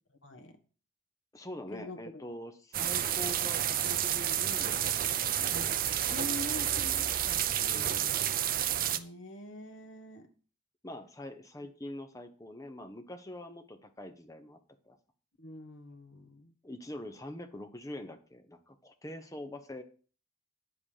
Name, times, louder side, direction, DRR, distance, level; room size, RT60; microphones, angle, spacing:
voice 1, 0.1-0.6 1.7-2.2 5.5-5.7 6.0-7.4 7.7-8.5 8.9-10.3 11.6-11.7 15.4-16.5, left 2 dB, 70° left, 7 dB, 1.4 m, -45 dB
voice 2, 1.3-4.9 5.4-5.8 7.6-8.1 10.8-14.6 14.9-15.0 16.6-19.8, left 1 dB, 15° left, 7 dB, 0.9 m, -44 dB
sound 1, 2.7-9.0, right 10 dB, 45° right, 0.5 m, -30 dB
9.3 x 7.7 x 5.0 m, 0.40 s
head